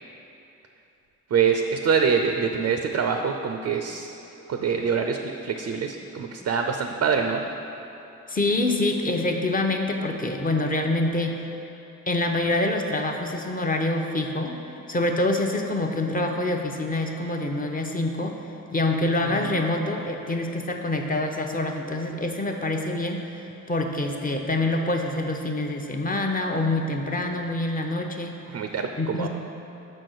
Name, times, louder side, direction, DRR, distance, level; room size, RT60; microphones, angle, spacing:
voice 1, 1.3-4.1 4.5-7.4 19.2-19.5 28.5-29.3, right 6 dB, 50° right, 5 dB, 0.5 m, -25 dB
voice 2, 8.3-11.4 12.1-14.6 14.9-18.4 18.7-28.4 29.0-29.3, left 2 dB, 25° left, 2 dB, 0.8 m, -26 dB
6.0 x 4.3 x 6.4 m, 2.9 s
supercardioid pair, 55°, 34 cm